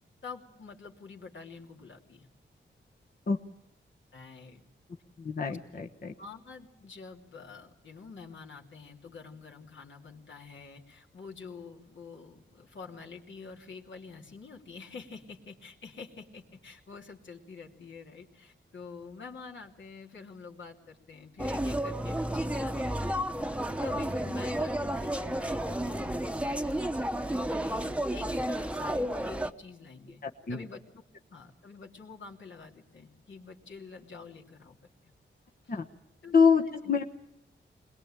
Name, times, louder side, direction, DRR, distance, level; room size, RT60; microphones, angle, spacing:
voice 1, 0.2-2.3 4.1-4.6 5.4-5.6 6.2-30.2 30.5-30.8 31.3-34.8 35.0-35.1 35.6-35.8 36.2-36.3 36.8-36.9, left 4 dB, 70° left, 0 dB, 3.1 m, -47 dB
voice 2, 5.2-6.1 30.2-30.6 35.7-35.9 36.3-37.0, left 5 dB, 45° left, 2 dB, 1.2 m, -26 dB
sound 1, 21.4-29.5, right 1 dB, 5° right, 1.0 m, -31 dB
21.5 x 21.0 x 8.9 m, 0.82 s
wide cardioid pair, 90°, 20 cm